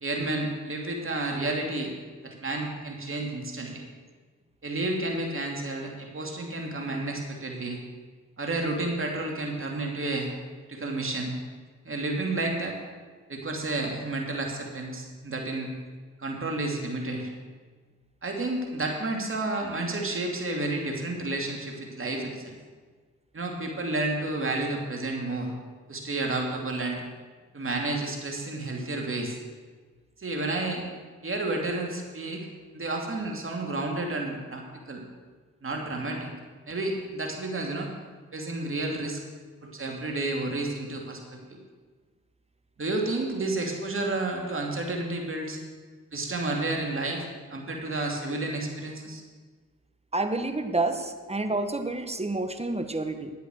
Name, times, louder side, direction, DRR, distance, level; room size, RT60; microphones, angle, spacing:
voice 1, 0.0-1.9 2.2-3.8 4.6-7.8 8.4-10.3 10.7-11.4 11.8-12.8 13.3-15.7 16.2-17.3 18.2-22.6 23.3-25.5 25.9-27.0 27.5-29.4 30.2-30.8 31.2-32.5 32.7-35.0 35.6-36.3 36.7-37.9 38.3-39.2 39.6-41.6 42.8-45.6 46.1-49.2, right 2 dB, 40° right, 1 dB, 2.8 m, -31 dB
voice 2, 50.1-53.3, right 2 dB, 20° right, 8 dB, 1.4 m, -29 dB
11.0 x 8.4 x 6.4 m, 1.5 s
hypercardioid pair, 45°, 34 cm